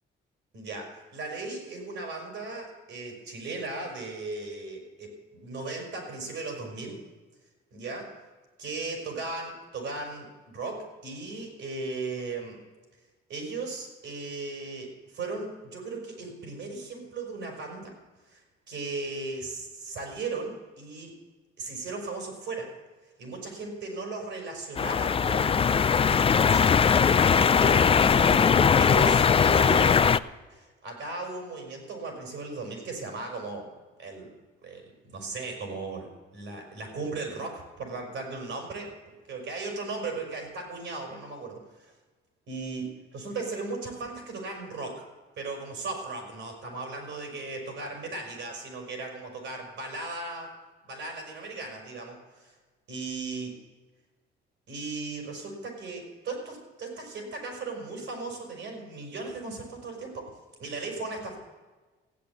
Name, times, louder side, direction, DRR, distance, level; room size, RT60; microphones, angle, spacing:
voice 1, 0.5-7.0 7.7-8.1 8.6-12.6 13.3-17.9 18.3-18.4 18.7-21.1 21.6-22.7 23.2-26.1 26.3-26.8 27.1-30.0 30.5-33.7 34.0-34.3 34.6-38.9 39.3-41.9 42.5-45.0 45.4-50.5 50.9-52.5 52.9-53.6 54.7-60.3 60.6-61.4, right 3 dB, 75° right, 2 dB, 5.3 m, -37 dB
sound 1, 24.8-30.2, left 6 dB, 30° left, 0.4 m, -20 dB
15.5 x 8.8 x 8.4 m, 1.3 s
cardioid pair, 90°, 20 cm